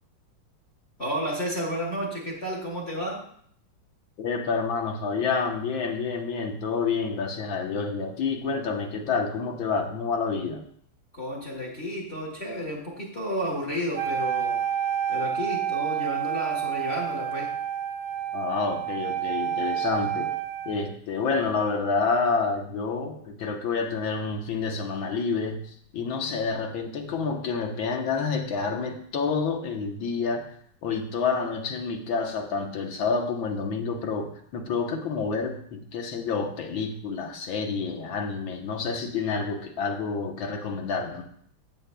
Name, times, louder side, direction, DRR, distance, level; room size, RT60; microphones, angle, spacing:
voice 1, 1.0-3.3 11.1-14.6 15.1-17.5, equal, 30° left, -3 dB, 2.4 m, -32 dB
voice 2, 4.2-10.6 18.3-20.3 20.7-30.5 30.8-41.2, left 4 dB, 75° left, 4 dB, 1.8 m, -28 dB
Wind instrument woodwind instrument, 13.9-20.9, right 9 dB, 70° right, 0.4 m, -29 dB
17.0 x 6.7 x 2.2 m, 0.62 s
omnidirectional pair, 2.2 m